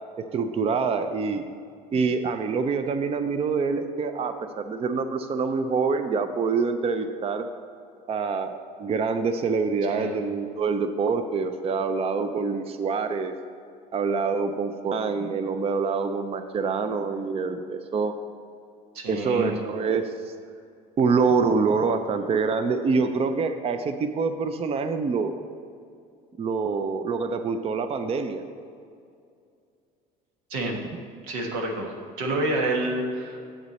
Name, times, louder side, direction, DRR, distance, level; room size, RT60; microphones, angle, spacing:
voice 1, 0.2-1.4 1.9-7.5 8.1-13.3 13.9-18.1 19.1-20.3 21.0-25.3 26.4-28.4, right 4 dB, 30° right, 8 dB, 0.5 m, -26 dB
voice 2, 18.9-19.6 30.5-30.8 31.3-33.4, right 2 dB, 90° right, 1 dB, 1.4 m, -28 dB
8.0 x 7.4 x 4.1 m, 2.4 s
supercardioid pair, 90°, 19 cm